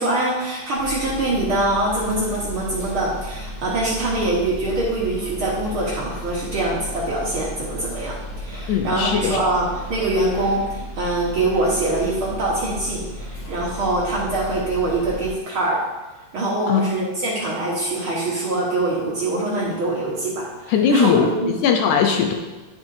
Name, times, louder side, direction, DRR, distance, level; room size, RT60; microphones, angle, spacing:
voice 1, 0.0-15.8 16.3-21.1 21.4-21.5, right 2 dB, 65° right, -5 dB, 1.3 m, -24 dB
sound 1, 0.8-15.3, equal, 55° left, 2.5 m, -34 dB
voice 2, 8.7-9.4 16.7-16.8 20.7-21.3 21.6-22.3, left 7 dB, 80° left, 3 dB, 1.7 m, -19 dB
10.5 x 7.1 x 2.7 m, 1.2 s
omnidirectional pair, 4.2 m